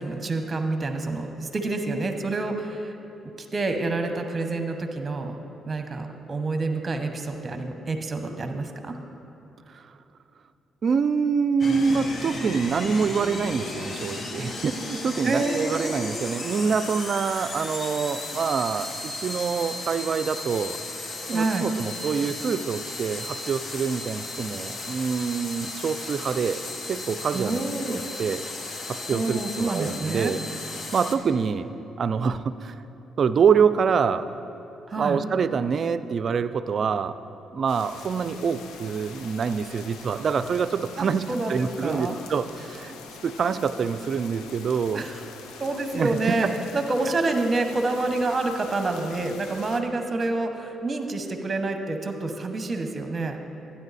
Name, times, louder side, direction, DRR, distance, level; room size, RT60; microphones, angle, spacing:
voice 1, 0.0-2.9 3.4-5.4 5.7-9.0 15.2-16.1 21.3-21.7 27.3-28.0 29.1-30.3 34.9-35.2 41.0-42.2 44.9-45.2 45.6-53.4, right 2 dB, 35° right, 6 dB, 1.0 m, -28 dB
voice 2, 10.8-20.8 21.2-26.6 26.9-27.6 27.9-28.4 28.9-30.4 30.9-31.7 32.0-32.8 33.2-34.3 35.0-37.2 37.5-43.0 43.2-45.0 45.9-46.4, right 6 dB, 50° right, 12 dB, 0.4 m, -26 dB
sound 1, 11.6-31.1, left 2 dB, 45° left, 1.1 m, -35 dB
sound 2, 37.7-49.8, left 5 dB, 90° left, 0.6 m, -44 dB
12.5 x 9.8 x 4.1 m, 2.8 s
cardioid pair, 90°, 0 cm